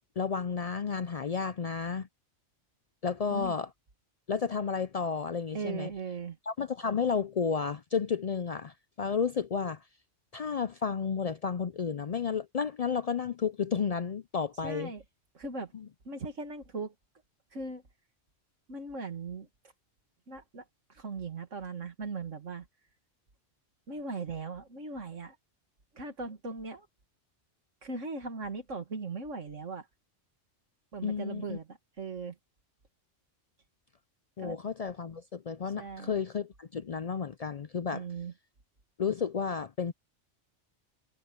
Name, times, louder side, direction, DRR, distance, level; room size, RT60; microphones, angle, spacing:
voice 1, 0.2-2.1 3.0-3.7 4.3-5.9 6.5-9.8 10.3-14.9 15.7-15.9 31.0-31.6 34.4-38.0 39.0-39.9, left 6 dB, 65° left, 0.3 m, -32 dB
voice 2, 5.5-6.4 14.6-15.0 15.3-15.7 16.1-16.9 17.5-17.8 18.7-19.5 20.3-20.6 20.9-22.7 23.9-25.4 25.9-26.9 27.8-29.9 30.9-32.4 34.4-34.6 35.8-36.2 37.9-38.3, right 4 dB, 80° right, 2.4 m, -39 dB
omnidirectional pair, 1.3 m